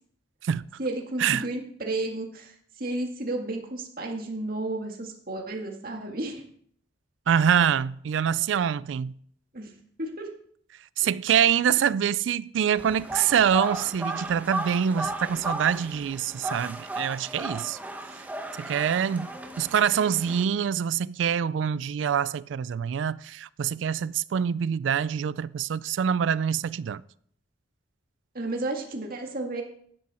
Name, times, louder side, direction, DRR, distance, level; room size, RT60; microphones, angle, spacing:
voice 1, 0.8-6.4 9.5-9.7 10.0-10.3 28.3-29.6, right 2 dB, 55° right, 1.9 m, -32 dB
voice 2, 7.3-9.1 11.0-17.8 18.6-19.3 19.6-27.0, right 8 dB, 85° right, 0.3 m, -25 dB
sound 1, 12.8-20.4, right 2 dB, 10° right, 1.0 m, -35 dB
11.5 x 9.8 x 4.3 m
head